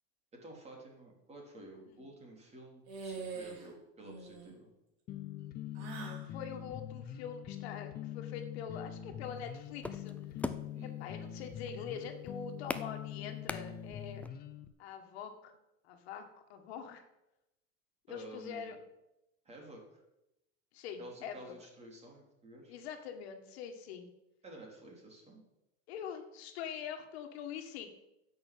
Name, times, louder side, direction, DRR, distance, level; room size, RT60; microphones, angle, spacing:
voice 1, 0.3-4.7 10.7-11.0 18.1-18.8 19.5-20.0 21.0-22.7 24.4-25.4, right 1 dB, 20° right, 0 dB, 3.7 m, -51 dB
sound 1, 2.9-3.7 4.0-4.5 5.7-6.3, right 5 dB, 60° right, 4.3 m, -43 dB
sound 2, 5.1-14.7, left 10 dB, 30° left, 0.8 m, -44 dB
voice 2, 6.0-10.2 11.0-14.2 14.8-15.6 15.8-17.1 18.1-18.8 20.7-21.5 22.7-24.1 25.9-27.9, left 7 dB, 80° left, 6 dB, 1.9 m, -44 dB
sound 3, 9.3-14.3, left 2 dB, 5° left, 0.5 m, -42 dB
10.0 x 6.6 x 8.7 m, 0.89 s
supercardioid pair, 140°, 31 cm